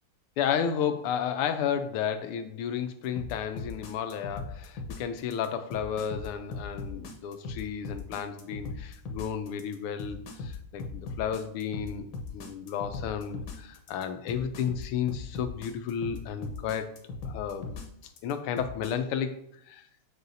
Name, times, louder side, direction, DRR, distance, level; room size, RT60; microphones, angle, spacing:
voice 1, 0.4-12.1 12.3-17.0 17.2-17.8 18.2-19.3 19.7-19.8, left 8 dB, 85° left, 8 dB, 1.6 m, -32 dB
sound 1, 3.2-18.9, left 3 dB, 65° left, 1.5 m, -38 dB
8.2 x 4.7 x 2.7 m, 0.73 s
omnidirectional pair, 2.4 m